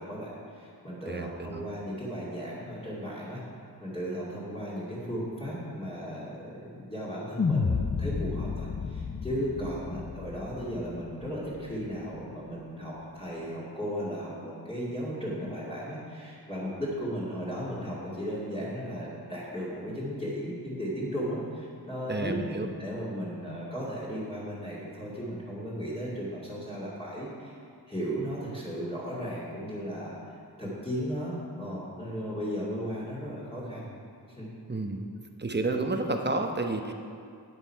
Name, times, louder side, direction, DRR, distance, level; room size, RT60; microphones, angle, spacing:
voice 1, 0.0-3.4 3.8-27.6 27.9-30.1 30.6-34.0 34.4-34.5, equal, 15° left, -9 dB, 2.4 m, -35 dB
voice 2, 1.1-1.6 22.1-22.7 34.7-35.1 35.4-36.9, right 2 dB, 25° right, 4 dB, 0.9 m, -30 dB
sound 1, 7.4-11.7, left 5 dB, 35° left, 0.5 m, -31 dB
10.0 x 8.2 x 4.6 m, 2.4 s
wide cardioid pair, 55°, 41 cm